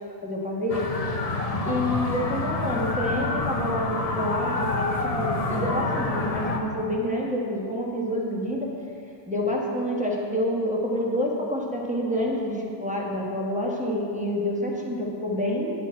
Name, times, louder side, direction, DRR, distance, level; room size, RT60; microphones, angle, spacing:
voice 1, 0.2-0.9 1.6-8.7 9.3-15.7, equal, 5° right, -3 dB, 1.0 m, -28 dB
sound 1, 0.7-6.6, left 3 dB, 40° left, 0.5 m, -28 dB
9.1 x 9.0 x 4.4 m, 2.6 s
omnidirectional pair, 1.4 m